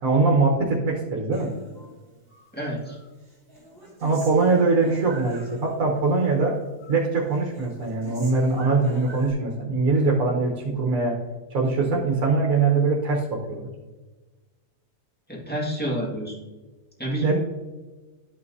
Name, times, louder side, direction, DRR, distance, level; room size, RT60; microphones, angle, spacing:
voice 1, 0.0-1.5 4.0-6.5 6.9-11.2 11.5-13.7 17.2-17.3, right 3 dB, 65° right, -1 dB, 1.5 m, -22 dB
Human voice, 1.3-2.5 2.8-6.0 6.3-7.1 7.3-9.3, right 1 dB, 25° right, 2.4 m, -45 dB
voice 2, 2.5-3.0 15.3-16.4 17.0-17.3, right 1 dB, 5° left, -5 dB, 1.8 m, -29 dB
12.0 x 5.7 x 2.7 m, 1.3 s
omnidirectional pair, 1.6 m